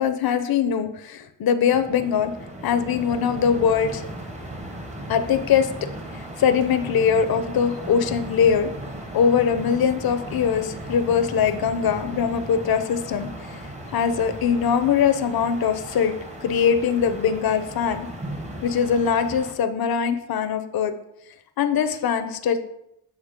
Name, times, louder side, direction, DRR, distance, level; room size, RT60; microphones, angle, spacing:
voice 1, 0.0-2.3 2.6-4.1 5.1-5.7 6.1-8.7 9.1-13.6 13.9-16.1 16.4-18.1 18.6-20.9 21.6-22.6, left 7 dB, 55° left, 8 dB, 0.7 m, -22 dB
sound 1, 1.7-19.5, right 1 dB, 15° right, 1.0 m, -36 dB
7.3 x 4.1 x 5.1 m, 0.81 s
cardioid pair, 95°, 43 cm